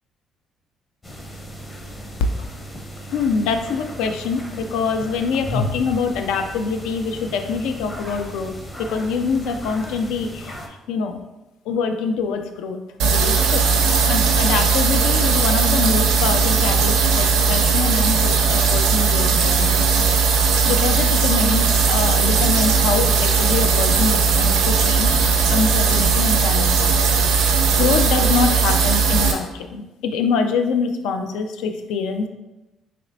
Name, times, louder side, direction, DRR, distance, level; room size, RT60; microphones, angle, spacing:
sound 1, 1.0-10.7, left 1 dB, 30° left, 0.7 m, -34 dB
voice 1, 3.1-8.5 8.8-11.2 11.7-20.0 20.4-25.2 25.5-26.8 27.4-32.3, left 5 dB, 80° left, 7 dB, 0.3 m, -25 dB
sound 2, 13.0-29.3, right 5 dB, 85° right, 0.5 m, -18 dB
4.1 x 3.1 x 2.6 m, 1.0 s
supercardioid pair, 65°, 0 cm